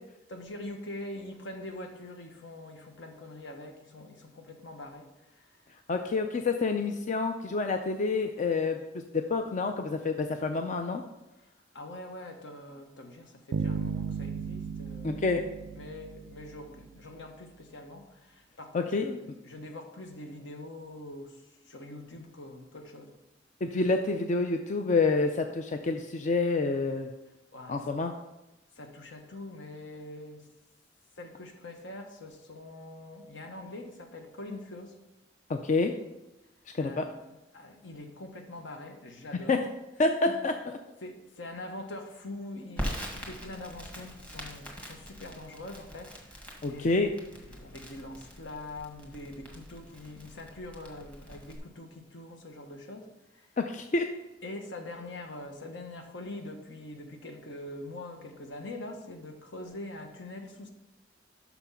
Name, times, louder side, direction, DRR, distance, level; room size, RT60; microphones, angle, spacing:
voice 1, 0.3-5.5 11.7-15.2 15.8-19.1 19.4-23.1 27.5-27.8 28.8-30.5 31.2-34.9 36.8-39.6 40.3-40.4 41.0-47.0 47.5-53.1 53.3-53.5 54.4-60.7, left 2 dB, 70° left, 4 dB, 1.1 m, -44 dB
voice 2, 5.9-11.0 15.0-15.4 18.7-19.2 23.6-27.1 27.7-28.1 35.5-35.9 36.7-37.1 39.5-39.7 40.0-40.7 46.6-47.1 53.6-54.0, left 3 dB, 40° left, 5 dB, 0.4 m, -28 dB
sound 1, 13.5-16.9, right 6 dB, 65° right, 0.3 m, -35 dB
Crackle, 42.8-51.6, equal, 5° left, 1.5 m, -42 dB
6.0 x 5.9 x 5.6 m, 0.97 s
head